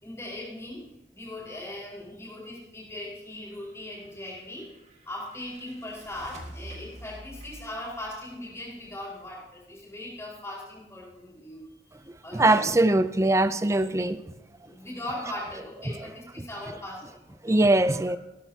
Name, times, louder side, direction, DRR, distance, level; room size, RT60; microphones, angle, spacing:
voice 1, 0.0-4.7 5.0-12.7 14.6-17.0 17.3-17.6, left 1 dB, 15° left, -4 dB, 4.7 m, -39 dB
sound 1, 3.8-9.5, right 1 dB, 40° right, 2.4 m, -48 dB
voice 2, 12.3-14.2 17.4-18.2, right 2 dB, 15° right, 12 dB, 0.5 m, -21 dB
20.5 x 13.0 x 2.8 m, 0.95 s
head